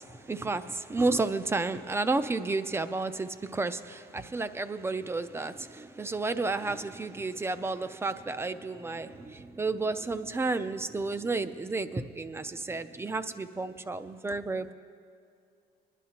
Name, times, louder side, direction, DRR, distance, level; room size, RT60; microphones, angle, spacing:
voice 1, 0.0-14.7, right 3 dB, 15° right, 12 dB, 0.4 m, -32 dB
20.5 x 11.0 x 2.9 m, 2.4 s
cardioid pair, 110°, 17 cm